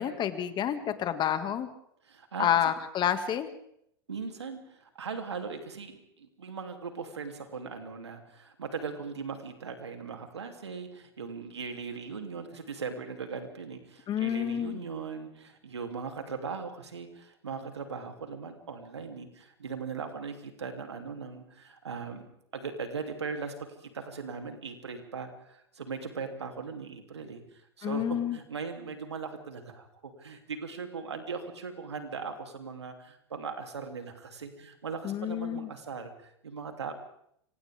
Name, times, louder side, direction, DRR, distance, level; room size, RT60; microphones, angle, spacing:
voice 1, 0.0-1.7 2.4-3.5 14.1-14.8 27.8-28.4 35.0-35.7, left 9 dB, 35° left, 9 dB, 2.2 m, -29 dB
voice 2, 2.0-2.6 4.1-22.3 22.5-23.5 23.8-36.9, right 5 dB, 90° right, 5 dB, 3.1 m, -39 dB
29.0 x 25.5 x 3.7 m, 0.71 s
hypercardioid pair, 100°, 14 cm